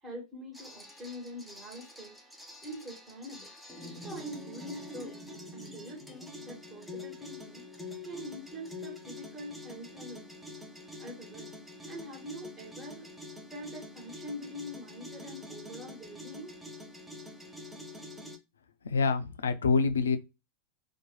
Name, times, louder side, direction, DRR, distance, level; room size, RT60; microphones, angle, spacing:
voice 1, 0.0-2.2 2.6-3.5 4.0-5.2 5.5-7.6 8.0-10.3 11.0-11.5 11.9-13.1 13.5-16.5, equal, 20° right, 1.3 m, -44 dB
sound 1, 0.5-18.4, left 2 dB, 5° right, 0.5 m, -46 dB
voice 2, 18.8-20.2, left 4 dB, 70° left, 0.3 m, -26 dB
2.8 x 2.1 x 2.9 m
figure-of-eight pair, 90°, 0 cm